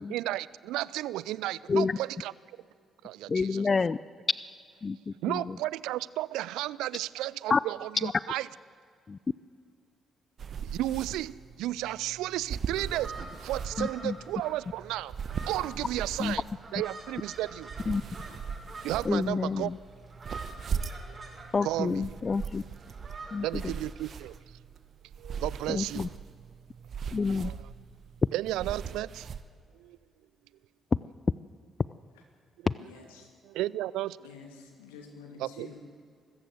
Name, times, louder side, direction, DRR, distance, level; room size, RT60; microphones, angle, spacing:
voice 1, 0.1-2.3 3.0-3.6 5.2-8.5 10.6-11.3 11.6-15.1 15.5-16.4 16.7-17.7 18.8-19.7 21.1-21.2 21.6-22.1 23.4-24.3 25.2-26.1 27.3-27.6 28.3-29.3 29.8-30.0 33.5-34.2 35.4-35.7, right 15 dB, 75° right, 21 dB, 0.4 m, -33 dB
voice 2, 3.3-4.0 4.8-5.6 7.5-7.6 8.0-8.1 9.1-9.2 13.8-14.2 16.2-16.4 17.9-18.0 19.0-19.8 21.5-22.6 23.3-23.6 25.7-26.1 27.1-27.5, left 4 dB, 40° left, 18 dB, 0.4 m, -28 dB
sound 1, 10.4-29.4, right 6 dB, 55° right, 1.0 m, -40 dB
sound 2, 12.8-24.2, right 3 dB, 40° right, 5.9 m, -47 dB
voice 3, 32.8-33.3 34.2-35.8, left 5 dB, 85° left, 3 dB, 2.6 m, -49 dB
24.0 x 15.0 x 8.0 m, 2.3 s
hypercardioid pair, 40°, 0 cm